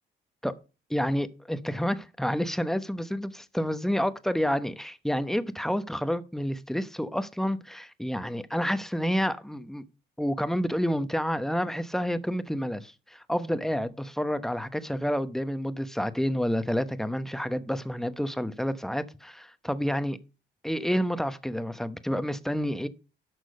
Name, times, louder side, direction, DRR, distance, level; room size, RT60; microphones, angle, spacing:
voice 1, 0.9-9.8 10.2-20.2 20.6-22.9, equal, ahead, 0.9 m, -29 dB
11.5 x 6.2 x 5.4 m
cardioid pair, 90°, 20 cm